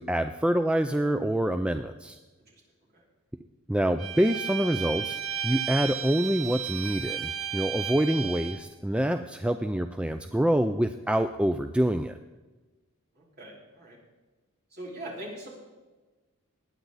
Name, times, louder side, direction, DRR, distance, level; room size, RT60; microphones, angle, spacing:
voice 1, 0.0-2.2 3.7-5.2 5.4-12.2, right 1 dB, 5° right, 8 dB, 0.3 m, -26 dB
Bowed string instrument, 4.0-8.6, right 8 dB, 85° right, 1.6 m, -33 dB
voice 2, 13.1-14.0 14.7-15.5, right 1 dB, 45° right, -5 dB, 4.5 m, -41 dB
20.0 x 9.2 x 4.0 m, 1.2 s
head